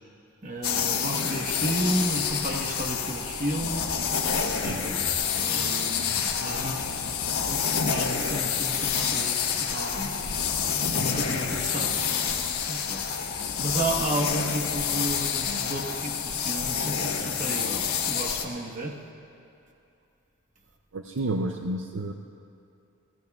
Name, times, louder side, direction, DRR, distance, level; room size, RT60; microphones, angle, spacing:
voice 1, 0.4-4.0 4.6-5.1 5.3-7.2 7.5-10.2 10.9-11.9 12.7-13.0 13.6-19.0, right 1 dB, 35° right, 1 dB, 1.3 m, -32 dB
sound 1, 0.6-18.4, left 7 dB, 85° left, 1.2 m, -28 dB
voice 2, 20.9-22.1, right 2 dB, 60° right, 4 dB, 0.5 m, -30 dB
25.5 x 16.5 x 2.4 m, 2.6 s
head